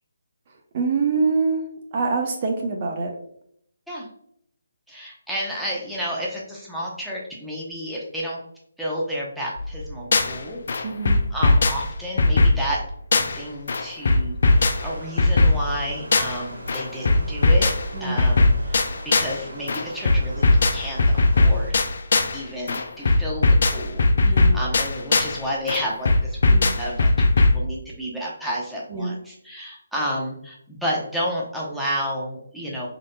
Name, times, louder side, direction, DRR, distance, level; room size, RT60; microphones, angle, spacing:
voice 1, 0.7-1.6 1.9-3.1 10.8-11.2 17.9-18.2 24.2-24.6 26.5-26.7 28.9-29.2, right 4 dB, 40° right, 2 dB, 0.7 m, -24 dB
voice 2, 4.9-8.4 8.8-10.6 11.3-12.8 13.1-17.7 18.0-21.0 21.3-21.8 22.3-32.9, equal, ahead, -6 dB, 0.9 m, -31 dB
sound 1, 9.6-10.4 10.7-13.4 13.7-16.4 16.7-19.4 19.7-22.4 22.7-25.4 25.7-27.6, left 2 dB, 60° left, 0.6 m, -19 dB
Stream, 14.4-21.7, right 1 dB, 80° right, 1.8 m, -41 dB
5.0 x 3.9 x 2.3 m, 0.67 s
figure-of-eight pair, 155°, 0 cm